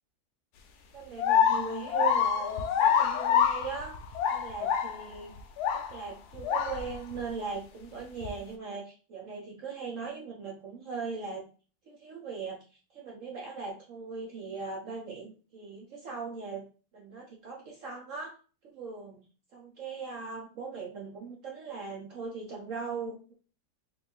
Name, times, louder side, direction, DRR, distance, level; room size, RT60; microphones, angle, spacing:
voice 1, 0.9-4.0 4.3-5.3 5.7-11.4 11.9-12.6 12.9-16.7 16.9-18.3 18.6-19.2 19.5-23.3, right 5 dB, 65° right, -2 dB, 0.8 m, -39 dB
sound 1, 1.2-6.0 6.3-7.2 8.2-8.3, left 8 dB, 70° left, 1.0 m, -26 dB
3.8 x 2.6 x 3.4 m, 0.37 s
omnidirectional pair, 2.0 m